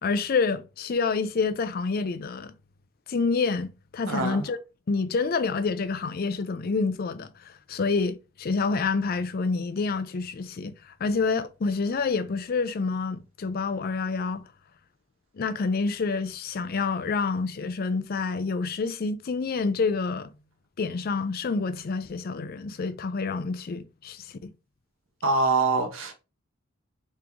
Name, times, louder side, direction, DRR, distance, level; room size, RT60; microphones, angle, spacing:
voice 1, 0.0-2.5 3.1-4.6 4.9-14.4 15.3-20.3 20.8-24.5, left 4 dB, 45° left, 0.4 m, -28 dB
voice 2, 4.1-4.4 25.2-26.1, right 3 dB, 70° right, 1.0 m, -24 dB
3.7 x 3.1 x 3.4 m
head